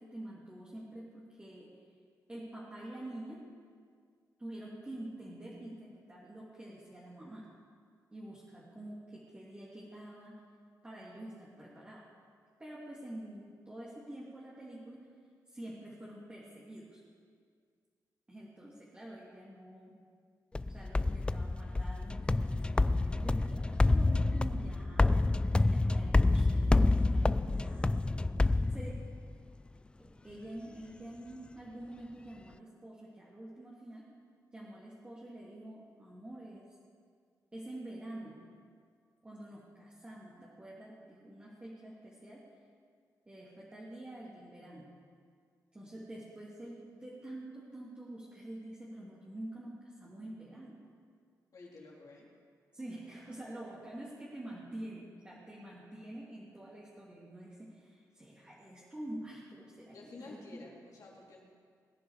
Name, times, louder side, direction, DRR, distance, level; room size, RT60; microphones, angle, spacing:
voice 1, 0.0-1.7 2.3-3.5 4.4-7.5 8.1-10.4 10.8-12.1 12.6-15.1 15.5-17.0 18.3-20.0 20.7-25.1 25.6-27.9 28.7-28.9 30.0-34.1 34.5-36.7 37.5-38.4 39.2-42.4 43.2-44.9 45.7-50.8 52.7-60.4, right 1 dB, 15° right, -7 dB, 2.7 m, -47 dB
sound 1, 20.5-29.3, left 2 dB, 15° left, 0.3 m, -28 dB
voice 2, 51.5-52.3 59.9-61.4, left 3 dB, 60° left, -3 dB, 3.4 m, -51 dB
21.0 x 10.5 x 5.0 m, 2.1 s
wide cardioid pair, 120°, 7 cm